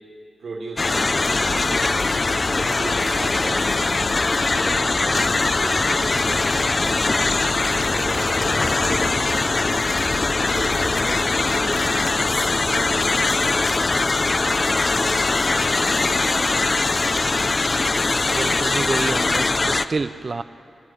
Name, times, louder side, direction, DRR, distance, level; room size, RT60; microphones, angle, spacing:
voice 1, 0.4-2.0 2.6-3.9 4.5-5.3 5.6-7.3 7.7-9.7 10.2-12.1 12.6-13.8 15.8-16.1, right 2 dB, 70° right, -4 dB, 3.2 m, -36 dB
sound 1, 0.8-19.8, left 3 dB, 30° left, 0.5 m, -21 dB
sound 2, 1.3-11.2, left 2 dB, 75° left, 3.9 m, -37 dB
voice 2, 18.3-20.4, right 3 dB, 40° right, 13 dB, 0.4 m, -27 dB
27.0 x 12.5 x 8.0 m, 2.6 s
wide cardioid pair, 165°, 0 cm